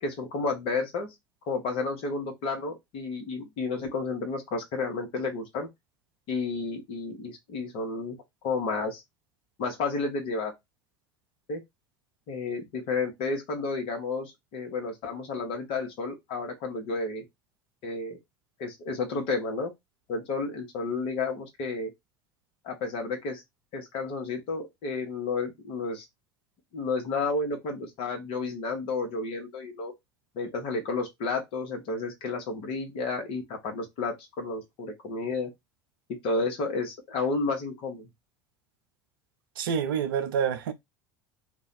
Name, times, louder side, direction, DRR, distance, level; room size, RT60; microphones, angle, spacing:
voice 1, 0.0-1.1 1.4-5.7 6.3-8.2 8.4-9.0 9.6-10.5 11.5-11.6 12.3-17.2 17.8-18.2 18.6-19.7 20.1-21.9 22.6-23.4 23.7-26.0 26.7-29.9 30.3-35.5 36.2-38.1, left 3 dB, 50° left, 1.1 m, -31 dB
voice 2, 39.6-40.7, right 7 dB, 70° right, 0.5 m, -27 dB
2.7 x 2.3 x 4.0 m
figure-of-eight pair, 70°, 12 cm